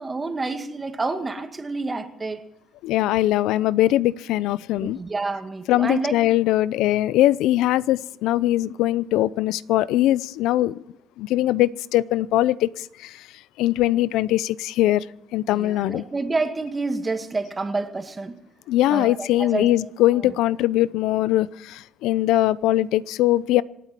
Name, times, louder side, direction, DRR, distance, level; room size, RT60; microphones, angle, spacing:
voice 1, 0.0-2.4 4.8-6.1 15.5-18.3 18.9-19.7 20.2-20.3, right 3 dB, 25° right, 7 dB, 2.0 m, -28 dB
voice 2, 2.8-5.0 5.7-10.8 11.2-13.3 13.6-15.0 15.3-16.0 18.7-23.6, left 14 dB, 85° left, 19 dB, 0.5 m, -21 dB
27.0 x 9.2 x 4.5 m, 0.84 s
cardioid pair, 95°, 0 cm